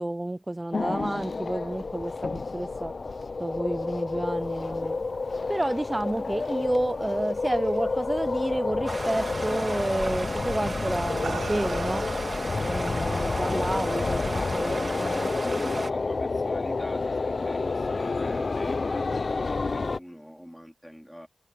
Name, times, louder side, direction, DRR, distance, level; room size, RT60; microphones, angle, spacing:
voice 1, 0.0-2.9 3.4-5.0 5.5-12.1 12.6-15.5, right 1 dB, 20° right, 0.5 m, -30 dB
sound 1, 0.7-20.0, left 3 dB, 50° left, 0.7 m, -29 dB
sound 2, 5.1-8.0 8.4-8.8 10.0-10.3 10.9-13.0, right 5 dB, 85° right, 6.6 m, -42 dB
Stream, 8.9-15.9, right 2 dB, 40° right, 3.1 m, -35 dB
voice 2, 14.7-21.3, equal, ahead, 4.3 m, -44 dB
wide cardioid pair, 70°, 0 cm